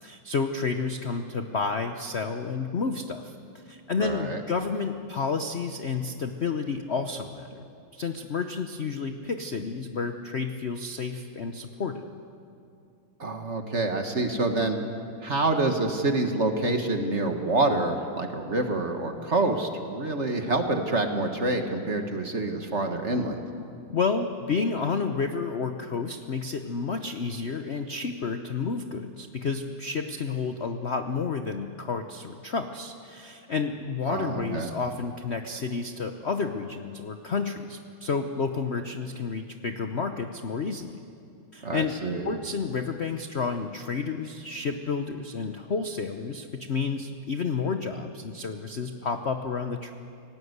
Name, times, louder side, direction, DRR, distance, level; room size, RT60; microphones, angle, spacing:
voice 1, 0.0-7.6 7.9-12.0 23.9-40.9 41.5-42.0 42.2-49.9, left 4 dB, 55° left, 7 dB, 0.7 m, -30 dB
voice 2, 4.0-4.4 13.2-14.8 15.2-23.4 34.1-34.7 41.6-42.2, right 2 dB, 35° right, 5 dB, 1.6 m, -27 dB
29.5 x 18.0 x 8.1 m, 2.5 s
omnidirectional pair, 2.4 m